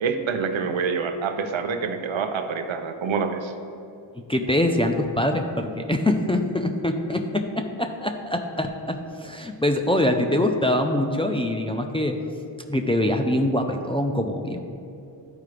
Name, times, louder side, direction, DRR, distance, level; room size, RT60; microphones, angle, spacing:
voice 1, 0.0-3.5, right 5 dB, 65° right, 7 dB, 0.7 m, -26 dB
voice 2, 4.3-12.2 12.7-14.6, left 1 dB, 10° left, 4 dB, 0.4 m, -24 dB
12.0 x 4.7 x 3.3 m, 2.6 s
cardioid pair, 70°, 50 cm